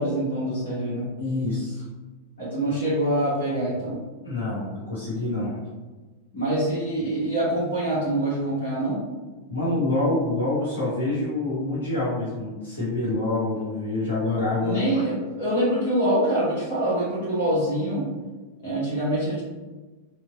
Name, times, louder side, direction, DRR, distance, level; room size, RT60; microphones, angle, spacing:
voice 1, 0.0-1.1 2.4-4.0 6.3-9.0 14.6-18.1 18.6-19.4, right 1 dB, 55° left, -8 dB, 1.2 m, -25 dB
voice 2, 1.2-1.8 4.2-5.6 9.5-15.0, left 2 dB, 80° left, -9 dB, 1.0 m, -26 dB
3.1 x 2.1 x 3.7 m, 1.3 s
figure-of-eight pair, 90°, 0 cm